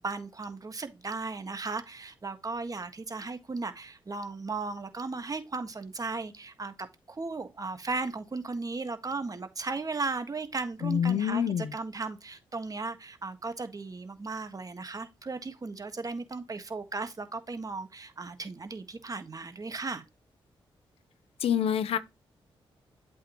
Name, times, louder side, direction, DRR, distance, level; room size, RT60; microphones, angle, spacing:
voice 1, 0.0-20.0, right 3 dB, 40° right, 1.6 m, -36 dB
voice 2, 10.8-11.7 21.4-22.0, left 8 dB, 80° left, 0.7 m, -26 dB
8.2 x 4.9 x 3.0 m
supercardioid pair, 55°, 10 cm